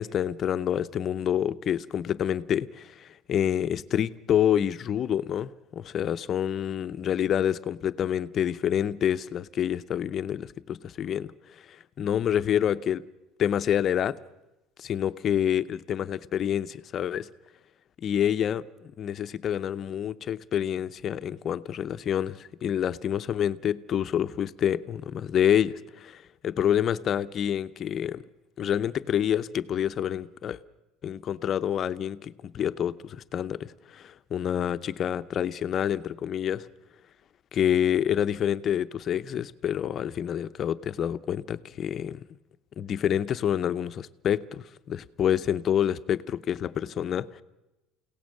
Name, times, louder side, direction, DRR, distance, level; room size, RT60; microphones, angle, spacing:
voice 1, 0.0-11.3 12.0-13.0 13.4-14.2 14.8-17.3 18.0-28.2 28.6-30.6 31.0-36.7 37.5-42.2 42.8-47.4, left 9 dB, 35° left, 0.7 m, -27 dB
29.5 x 17.5 x 6.5 m
cardioid pair, 155°, 0 cm